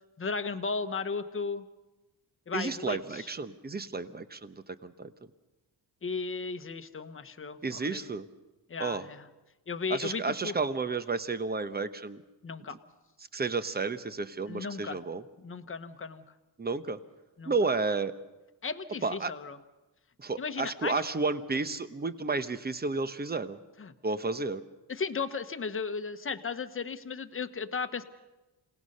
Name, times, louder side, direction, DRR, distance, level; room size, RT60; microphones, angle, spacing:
voice 1, 0.2-1.6 2.5-3.3 6.0-8.0 8.7-9.3 9.7-10.5 12.4-12.8 14.5-15.0 15.4-16.2 17.4-17.5 18.6-19.6 20.4-21.0 23.8-23.9 24.9-28.0, left 5 dB, 30° left, 9 dB, 1.2 m, -35 dB
voice 2, 2.5-5.1 7.6-8.2 8.8-9.1 9.9-12.2 13.3-15.2 16.6-17.0 17.5-18.1 19.0-19.3 20.2-23.6 24.0-24.6, right 4 dB, 20° right, 12 dB, 1.0 m, -32 dB
27.5 x 18.0 x 5.5 m, 1.1 s
cardioid pair, 95°, 42 cm